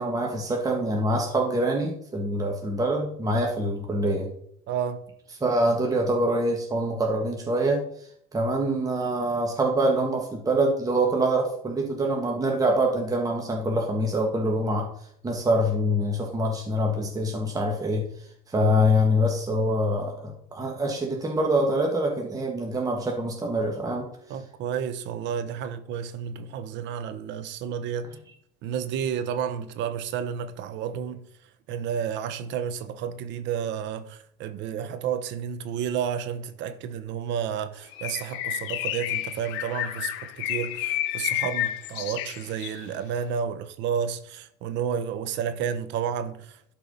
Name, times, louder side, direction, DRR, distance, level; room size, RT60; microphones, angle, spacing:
voice 1, 0.0-4.3 5.4-7.8 8.3-14.9 15.2-18.1 18.5-24.0, equal, 15° right, 1.7 m, -25 dB
voice 2, 4.7-5.0 15.5-15.6 18.6-18.7 24.3-28.1 28.6-31.3 31.7-46.7, right 8 dB, 60° right, 1.1 m, -31 dB
Bird, 37.9-42.8, left 13 dB, 70° left, 1.1 m, -30 dB
11.5 x 4.7 x 5.5 m
supercardioid pair, 115°, 21 cm